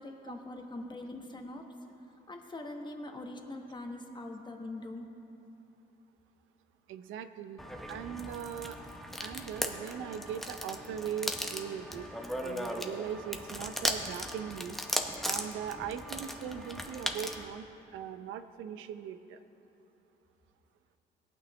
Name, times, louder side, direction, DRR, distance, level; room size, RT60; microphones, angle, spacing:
voice 1, 0.0-1.7 2.3-5.1 16.7-16.8, left 2 dB, 25° left, 3 dB, 1.3 m, -42 dB
voice 2, 6.9-7.6 7.9-8.8 9.2-12.1 12.4-14.8 15.2-17.7 17.9-19.4, right 8 dB, 90° right, 11 dB, 0.6 m, -40 dB
sound 1, 7.6-17.5, equal, ahead, 0.8 m, -37 dB
18.0 x 8.8 x 3.1 m, 2.9 s
cardioid pair, 90°, 20 cm